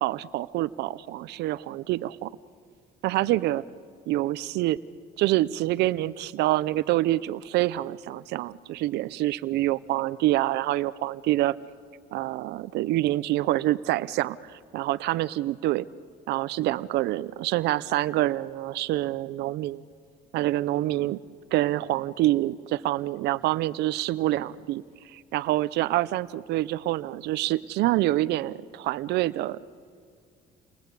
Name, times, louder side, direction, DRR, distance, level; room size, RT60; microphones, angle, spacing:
voice 1, 0.0-2.3 3.0-3.6 4.1-4.8 5.2-11.5 12.1-15.9 16.3-19.8 20.3-21.2 21.5-29.6, right 16 dB, 80° right, 17 dB, 0.6 m, -26 dB
29.5 x 23.0 x 8.4 m, 2.2 s
cardioid pair, 110°, 17 cm